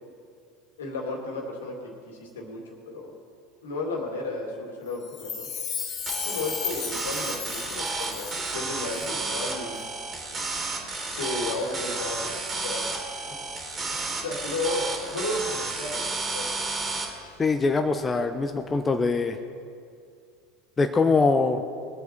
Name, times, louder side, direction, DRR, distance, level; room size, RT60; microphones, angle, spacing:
voice 1, 0.8-3.1 3.6-5.5 6.2-9.8 11.0-12.4 12.6-12.9 13.9-16.5, left 2 dB, 75° left, 1 dB, 2.4 m, -33 dB
Chime, 5.0-8.7 8.9-9.0, left 7 dB, 45° left, 1.9 m, -34 dB
sound 1, 6.1-17.1, right 3 dB, 30° right, 2.7 m, -32 dB
voice 2, 17.4-19.4 20.8-21.6, left 3 dB, 20° left, 6 dB, 0.7 m, -23 dB
20.5 x 8.1 x 4.5 m, 2.3 s
figure-of-eight pair, 75°, 0 cm